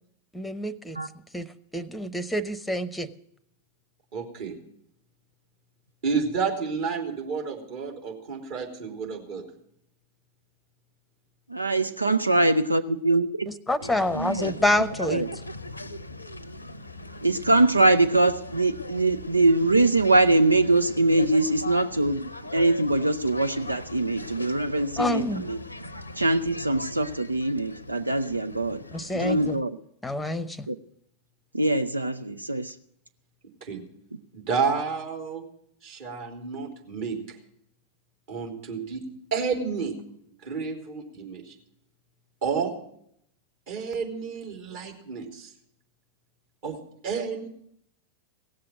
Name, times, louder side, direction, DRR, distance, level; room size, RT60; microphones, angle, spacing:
voice 1, 0.3-1.0 1.3-1.5 1.7-3.1 13.7-15.2 25.0-25.4 28.9-29.6 30.0-30.7, left 1 dB, 5° left, 16 dB, 0.9 m, -27 dB
voice 2, 4.1-4.6 6.0-9.5 33.6-33.8 34.3-35.4 35.8-37.2 38.3-39.9 40.4-41.5 42.4-42.7 43.7-45.5 46.6-46.8 47.0-47.5, right 5 dB, 50° right, 1 dB, 3.4 m, -30 dB
voice 3, 11.5-13.5 14.4-14.5 15.1-15.3 17.2-25.6 26.2-28.8 29.1-29.8 30.7-30.8 31.5-32.8, right 2 dB, 80° right, 11 dB, 0.5 m, -23 dB
sound 1, 13.8-29.6, left 1 dB, 85° left, 0.7 m, -39 dB
17.0 x 7.7 x 9.1 m, 0.71 s
figure-of-eight pair, 90°, 0 cm